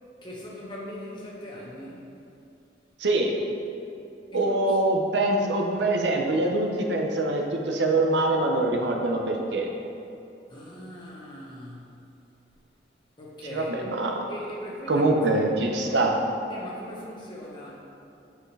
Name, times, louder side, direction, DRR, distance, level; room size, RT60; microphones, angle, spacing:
voice 1, 0.2-2.1 4.3-4.8 10.5-12.0 13.2-13.9 14.3-15.4 15.8-16.1 16.5-17.8, left 1 dB, 25° left, -5 dB, 1.4 m, -40 dB
voice 2, 3.0-3.3 4.3-9.7 13.5-14.1 14.9-16.1, right 2 dB, 85° right, 1 dB, 0.8 m, -24 dB
9.0 x 5.0 x 3.3 m, 2.8 s
head